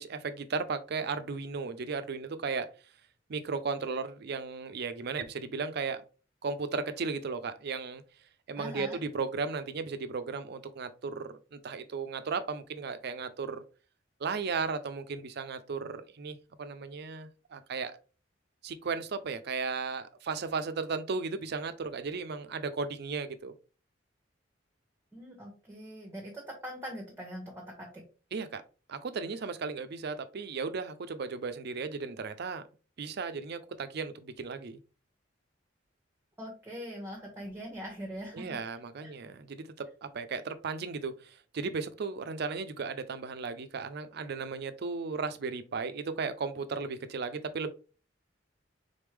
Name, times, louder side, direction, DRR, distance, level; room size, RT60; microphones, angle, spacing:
voice 1, 0.0-2.7 3.3-6.0 6.4-8.0 8.5-13.6 14.2-18.0 18.6-23.5 28.3-28.6 28.9-32.6 33.0-34.8 38.3-47.7, right 4 dB, 60° right, 0.5 m, -35 dB
voice 2, 8.6-9.0 25.1-28.0 36.4-38.6 39.0-39.1, equal, 15° right, 0.9 m, -42 dB
3.8 x 3.5 x 3.2 m
head